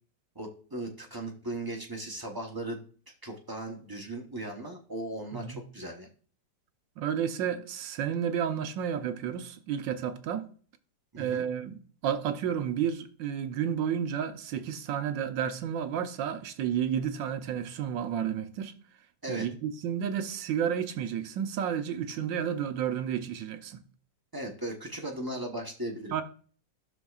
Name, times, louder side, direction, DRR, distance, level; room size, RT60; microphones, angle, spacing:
voice 1, 0.3-2.8 3.2-6.1 11.1-11.4 19.2-19.5 24.3-26.2, right 1 dB, 30° right, 0.4 m, -37 dB
voice 2, 7.0-10.5 11.2-18.7 19.3-23.8 26.1-26.2, right 8 dB, 75° right, 1.4 m, -31 dB
13.5 x 6.2 x 2.4 m
omnidirectional pair, 2.1 m